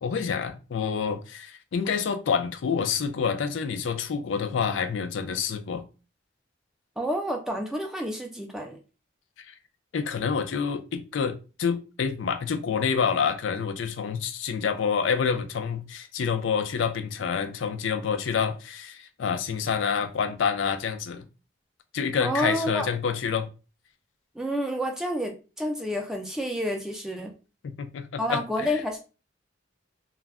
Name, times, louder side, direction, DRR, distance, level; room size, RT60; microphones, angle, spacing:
voice 1, 0.0-5.8 9.5-9.6 9.9-21.2 21.9-23.5 27.6-28.8, left 6 dB, 80° left, 0.4 m, -28 dB
voice 2, 7.0-8.8 22.2-22.9 24.4-27.3 28.2-29.0, equal, 5° right, 0.3 m, -29 dB
2.3 x 2.1 x 3.4 m
head